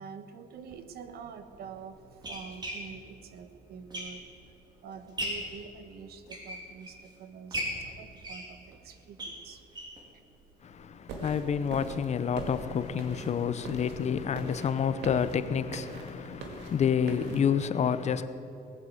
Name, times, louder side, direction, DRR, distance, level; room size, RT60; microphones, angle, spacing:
voice 1, 0.0-4.6 4.8-9.7 10.1-10.2, right 6 dB, 65° right, 1.4 m, -46 dB
sound 1, 0.6-0.8 1.5-4.5 4.9-5.6 6.1-7.1 7.5-10.0 10.4-10.5 10.8-10.9 11.2-11.3, equal, 25° right, 3.4 m, -38 dB
voice 2, 10.6-18.3, left 7 dB, 40° left, 0.8 m, -29 dB
sound 2, 11.1-17.4, right 3 dB, 85° right, 2.1 m, -43 dB
19.5 x 9.4 x 7.9 m
cardioid pair, 110°, 17 cm